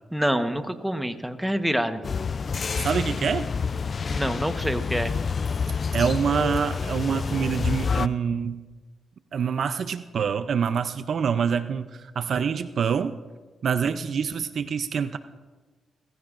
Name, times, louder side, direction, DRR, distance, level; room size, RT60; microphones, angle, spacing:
voice 1, 0.1-2.0 4.1-5.2, equal, 5° right, 8 dB, 1.1 m, -26 dB
sound 1, 2.0-8.1, left 5 dB, 45° left, 0.3 m, -28 dB
voice 2, 2.8-3.5 5.9-8.6 9.3-13.2 13.6-15.2, right 6 dB, 65° right, 12 dB, 0.5 m, -26 dB
26.0 x 15.0 x 2.5 m, 1.3 s
cardioid pair, 70°, 0 cm